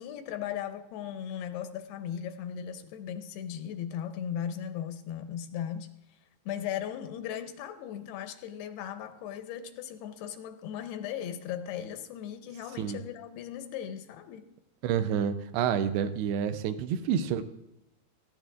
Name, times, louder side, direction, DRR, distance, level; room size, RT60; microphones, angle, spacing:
voice 1, 0.0-5.9 6.5-14.4, left 9 dB, 85° left, 2.7 m, -37 dB
voice 2, 14.8-17.4, right 8 dB, 80° right, 2.6 m, -28 dB
18.0 x 14.5 x 2.4 m
omnidirectional pair, 4.7 m